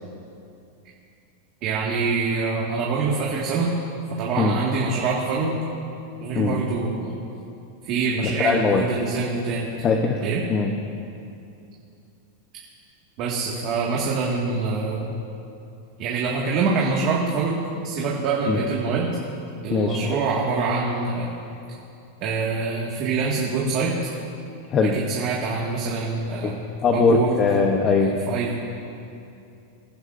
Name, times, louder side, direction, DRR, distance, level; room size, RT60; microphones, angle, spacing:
voice 1, 1.6-3.7 4.2-5.6 6.2-7.1 7.8-9.8 10.2-10.4 13.2-15.2 16.0-19.1 19.6-21.3 22.2-23.9 24.9-26.5 26.9-27.3 28.3-28.6, right 4 dB, 40° right, -4 dB, 1.8 m, -25 dB
voice 2, 8.2-8.8 9.8-10.2 10.5-10.8 18.5-18.6 19.7-20.2 24.7-25.0 26.4-28.2, left 4 dB, 25° left, 2 dB, 0.8 m, -21 dB
25.0 x 11.0 x 2.6 m, 2.7 s
supercardioid pair, 160°, 0 cm